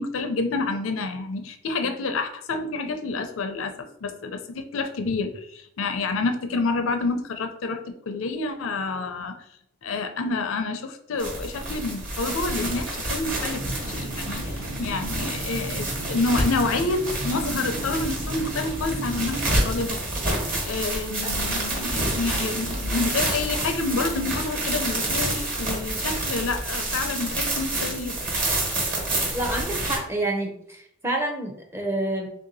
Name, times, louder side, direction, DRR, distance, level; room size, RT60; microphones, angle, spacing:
voice 1, 0.0-3.7 4.0-7.8 8.1-9.3 9.8-13.6 13.9-20.0 20.6-28.2, left 3 dB, 70° left, 6 dB, 0.5 m, -28 dB
sound 1, 11.2-30.0, right 1 dB, 40° right, 1.3 m, -28 dB
sound 2, 13.5-19.8, right 1 dB, 70° right, 0.7 m, -35 dB
voice 2, 29.3-32.3, right 1 dB, 10° right, 1 dB, 0.6 m, -28 dB
3.4 x 2.7 x 3.9 m, 0.71 s
head